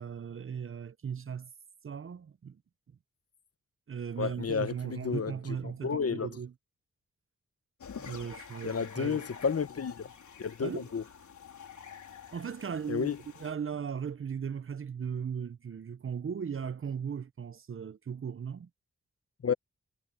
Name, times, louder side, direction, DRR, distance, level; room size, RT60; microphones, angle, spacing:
voice 1, 0.0-1.5 1.8-2.6 3.9-6.5 8.0-9.3 10.6-10.9 12.3-13.1 13.4-18.7, right 7 dB, 45° right, 0.6 m, -37 dB
voice 2, 4.2-5.3 5.8-6.3 8.6-10.1 10.4-11.0 12.9-13.2 19.4-19.5, left 6 dB, 55° left, 1.1 m, -31 dB
sound 1, 7.8-13.5, left 7 dB, 85° left, 3.7 m, -48 dB
cardioid pair, 70°, 29 cm